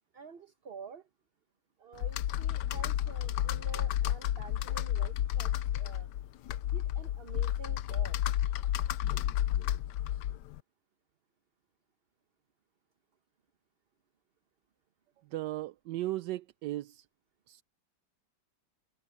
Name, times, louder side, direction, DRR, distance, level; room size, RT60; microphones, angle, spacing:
voice 1, 0.1-1.1 1.8-6.1 6.6-8.5, right 5 dB, 40° right, 1.0 m, -49 dB
Computer keyboard, 2.0-10.6, left 12 dB, 75° left, 1.2 m, -31 dB
voice 2, 15.3-17.0 17.5-17.6, right 16 dB, 85° right, 1.2 m, -36 dB
omnidirectional pair, 1.9 m